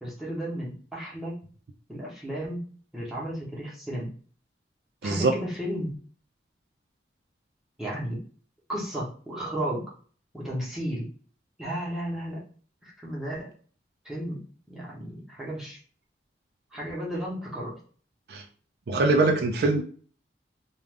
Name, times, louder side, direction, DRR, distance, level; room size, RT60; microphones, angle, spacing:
voice 1, 0.0-1.4 1.9-4.1 5.0-5.9 7.8-8.2 8.7-9.9 10.3-11.1 11.6-12.4 12.8-13.5 14.0-15.8 16.7-17.8, equal, 5° right, -6 dB, 0.8 m, -34 dB
voice 2, 5.0-5.3 18.3-18.4 18.9-19.8, right 3 dB, 60° right, 3 dB, 0.4 m, -22 dB
2.4 x 2.3 x 3.3 m, 0.43 s
head